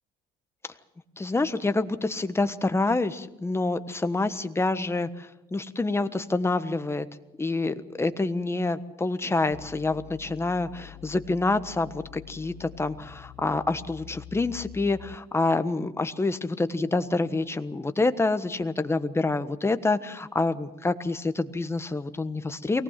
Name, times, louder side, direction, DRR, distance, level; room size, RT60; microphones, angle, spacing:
voice 1, 1.2-7.1 7.4-22.8, left 3 dB, 15° left, 10 dB, 1.3 m, -27 dB
sound 1, 9.5-15.5, left 13 dB, 80° left, 1.2 m, -46 dB
23.5 x 18.5 x 7.6 m, 0.98 s
cardioid pair, 110°, 17 cm